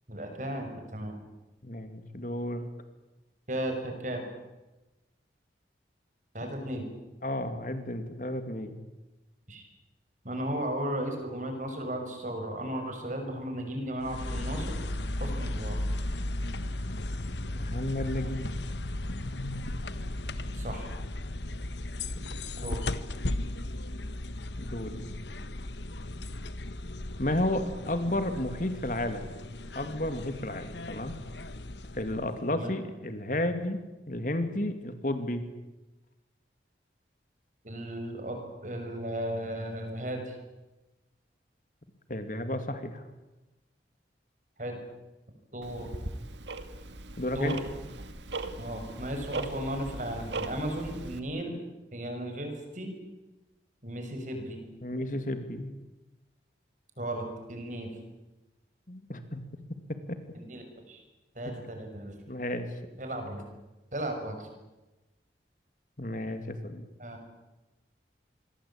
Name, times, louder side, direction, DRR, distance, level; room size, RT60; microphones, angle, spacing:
voice 1, 0.1-1.2 3.5-4.2 6.3-6.9 9.5-9.7 10.2-14.8 15.2-15.8 20.5-20.9 22.6-22.8 32.1-32.2 32.5-32.7 37.6-38.4 38.6-40.4 44.6-44.8 45.5-45.9 47.3-47.6 48.6-51.5 51.9-52.9 53.8-54.6 57.0-57.9 60.3-61.0 61.3-62.2 63.0-63.4 63.9-64.5 67.0-67.2, right 1 dB, 45° right, 5 dB, 6.5 m, -35 dB
voice 2, 1.6-2.7 7.2-8.8 17.5-18.5 22.2-22.3 22.6-22.8 24.6-25.0 27.2-29.3 29.7-31.1 31.9-35.4 42.1-43.0 47.2-47.5 54.8-55.8 58.9-59.4 59.9-60.2 62.3-62.7 66.0-66.8, left 1 dB, 45° left, 9 dB, 2.5 m, -32 dB
sound 1, 14.0-32.5, left 1 dB, 80° left, 1.4 m, -36 dB
Tick-tock, 45.6-51.2, right 2 dB, 85° right, 2.4 m, -39 dB
27.0 x 22.5 x 8.8 m, 1.1 s
head